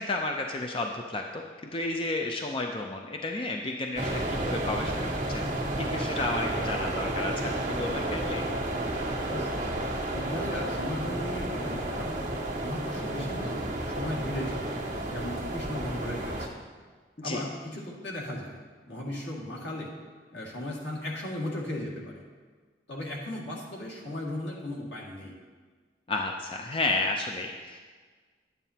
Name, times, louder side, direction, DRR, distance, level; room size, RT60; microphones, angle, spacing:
voice 1, 0.0-8.4 17.2-17.4 26.1-27.8, left 2 dB, 30° left, 2 dB, 0.5 m, -32 dB
sound 1, 4.0-16.5, right 1 dB, 45° right, 1.4 m, -31 dB
voice 2, 9.3-9.6 10.1-12.2 12.6-14.7 15.0-16.6 17.2-18.6 18.9-19.9 20.3-22.2 22.9-25.4, left 1 dB, 85° left, -4 dB, 2.1 m, -36 dB
11.0 x 9.1 x 2.8 m, 1.5 s
head